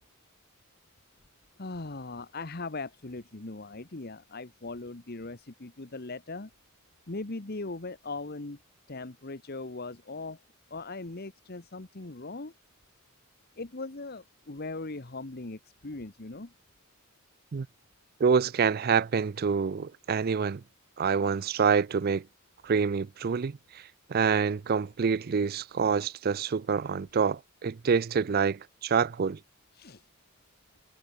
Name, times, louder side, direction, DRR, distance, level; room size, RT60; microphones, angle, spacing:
voice 1, 1.6-6.5 7.1-8.6 8.9-10.4 10.7-12.5 13.6-16.5 29.7-30.0, left 3 dB, 45° left, 1.2 m, -39 dB
voice 2, 18.2-20.6 21.0-22.2 22.6-23.6 24.1-29.4, right 6 dB, 45° right, 0.4 m, -26 dB
head